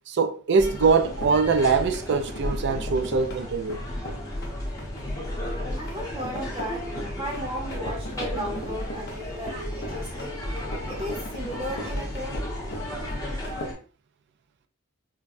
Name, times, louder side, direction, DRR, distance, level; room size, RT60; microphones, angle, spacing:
voice 1, 0.1-3.8 8.3-8.4, right 5 dB, 50° right, 0.4 m, -23 dB
sound 1, 0.6-13.7, equal, 50° left, 0.7 m, -40 dB
sound 2, 0.6-13.7, left 1 dB, 15° left, 0.9 m, -34 dB
voice 2, 5.3-6.9 7.2-10.4 10.9-12.5, equal, 20° right, 0.8 m, -35 dB
5.2 x 2.2 x 2.5 m
head